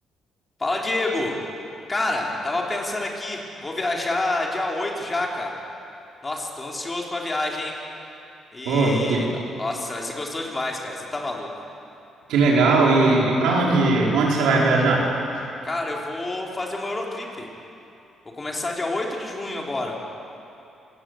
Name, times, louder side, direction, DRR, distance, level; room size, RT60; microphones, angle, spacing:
voice 1, 0.6-1.4 1.9-5.5 6.2-7.8 8.5-9.3 9.6-11.5 15.6-17.5 18.3-20.0, left 2 dB, 25° left, -1 dB, 4.3 m, -28 dB
voice 2, 8.7-9.3 12.3-15.0, right 3 dB, 90° right, -3 dB, 5.2 m, -19 dB
26.5 x 18.0 x 8.1 m, 2.7 s
cardioid pair, 90°, 0 cm